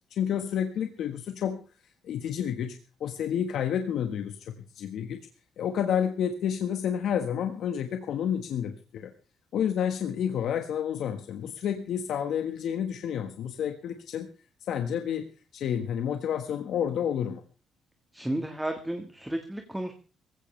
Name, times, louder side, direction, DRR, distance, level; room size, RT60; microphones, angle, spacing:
voice 1, 0.1-1.6 2.0-5.2 5.6-9.1 9.5-14.3 14.7-15.3 15.5-17.4, left 8 dB, 65° left, 7 dB, 1.4 m, -30 dB
voice 2, 18.1-19.9, right 1 dB, 5° right, 5 dB, 1.6 m, -32 dB
19.0 x 16.0 x 3.3 m, 0.36 s
cardioid pair, 135°, 0 cm